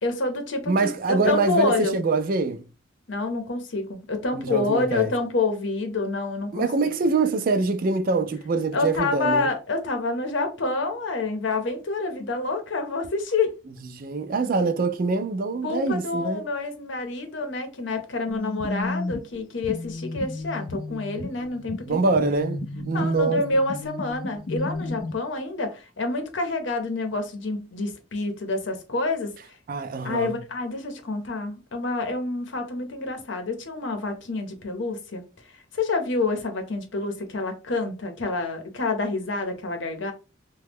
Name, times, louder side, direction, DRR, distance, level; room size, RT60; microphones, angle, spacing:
voice 1, 0.0-0.7 1.1-2.0 3.1-6.7 8.7-13.5 15.6-22.0 22.9-29.3 30.0-35.2 35.7-40.1, left 3 dB, 75° left, 0.8 m, -28 dB
voice 2, 0.7-2.6 4.3-5.1 6.5-9.5 13.9-16.5 21.9-23.4 29.7-30.3, right 3 dB, 50° right, 0.4 m, -24 dB
sound 1, 18.3-25.1, left 2 dB, 45° left, 0.4 m, -33 dB
2.9 x 2.2 x 3.5 m
head